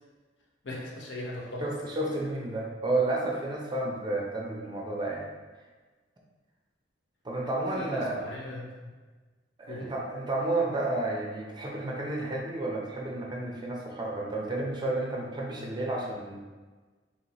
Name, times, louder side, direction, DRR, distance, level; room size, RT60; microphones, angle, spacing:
voice 1, 0.6-1.6 7.4-8.7 9.7-9.9, left 1 dB, 65° left, -2 dB, 0.8 m, -39 dB
voice 2, 1.6-5.3 7.2-8.2 9.6-16.4, right 2 dB, 25° right, -2 dB, 0.6 m, -31 dB
4.1 x 3.0 x 3.0 m, 1.3 s
head